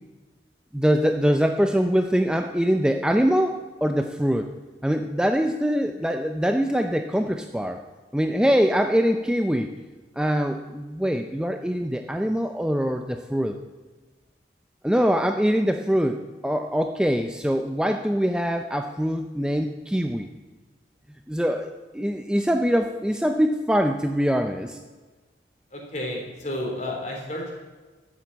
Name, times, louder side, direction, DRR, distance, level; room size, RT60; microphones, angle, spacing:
voice 1, 0.7-4.5 4.8-7.8 8.1-9.7 10.2-13.5 14.8-16.2 16.4-20.3 21.3-24.8, equal, 5° right, 5 dB, 0.5 m, -23 dB
voice 2, 25.7-27.5, left 1 dB, 40° left, 0 dB, 3.6 m, -31 dB
14.0 x 7.6 x 8.5 m, 1.3 s
head